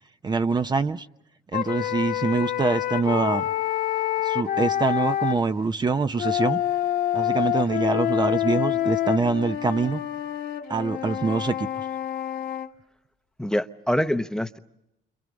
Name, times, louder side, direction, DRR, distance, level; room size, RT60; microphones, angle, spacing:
voice 1, 0.2-1.1 1.5-3.4 4.2-6.6 7.1-10.0 10.7-11.7, right 4 dB, 25° right, 0.8 m, -24 dB
sound 1, 1.5-5.4 6.2-12.7, left 12 dB, 60° left, 1.6 m, -27 dB
voice 2, 13.4-14.6, equal, 5° left, 0.8 m, -25 dB
29.5 x 26.5 x 5.2 m
cardioid pair, 110°, 17 cm